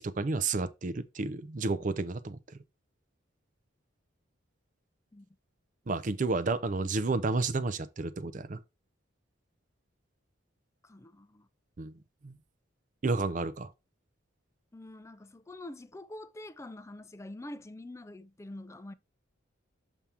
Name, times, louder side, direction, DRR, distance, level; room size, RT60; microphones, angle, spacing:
voice 1, 0.0-2.6 5.9-8.6 11.8-11.9 12.2-12.4 13.0-13.7, right 3 dB, 40° right, 0.5 m, -31 dB
voice 2, 10.8-11.5 14.7-18.9, left 1 dB, 15° left, 0.4 m, -45 dB
7.2 x 3.5 x 4.2 m
head